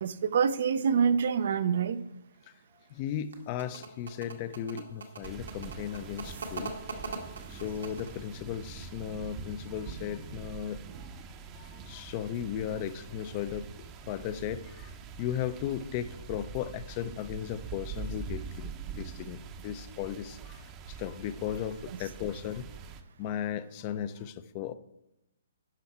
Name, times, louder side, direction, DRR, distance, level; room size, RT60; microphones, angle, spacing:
voice 1, 0.0-2.0, right 7 dB, 60° right, 14 dB, 0.5 m, -26 dB
voice 2, 2.9-6.8 7.5-11.1 11.5-13.7 14.1-22.7 23.2-24.7, left 9 dB, 35° left, 14 dB, 0.5 m, -36 dB
sound 1, 3.1-8.3, right 3 dB, 80° right, 1.5 m, -42 dB
sound 2, 5.2-23.0, right 6 dB, 25° right, 0.7 m, -44 dB
10.0 x 5.7 x 4.2 m, 0.88 s
hypercardioid pair, 145°, 0 cm